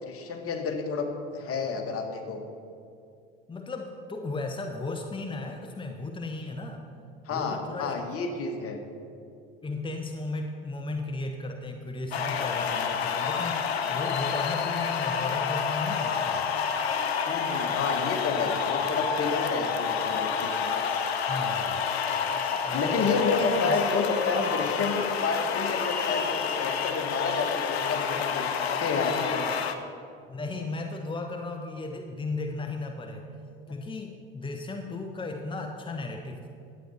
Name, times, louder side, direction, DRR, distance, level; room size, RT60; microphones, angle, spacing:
voice 1, 0.0-2.4 7.3-8.9 17.2-20.8 22.7-29.7, left 4 dB, 50° left, 4 dB, 1.8 m, -30 dB
voice 2, 3.5-6.9 7.3-8.0 9.6-13.6 13.9-16.5 21.2-21.9 22.5-23.1 23.6-23.8 30.3-33.3 33.7-36.5, left 2 dB, 15° left, 4 dB, 1.1 m, -35 dB
sound 1, 12.1-29.7, left 6 dB, 90° left, 0.8 m, -29 dB
11.5 x 9.0 x 5.7 m, 2.5 s
hypercardioid pair, 70°, 30 cm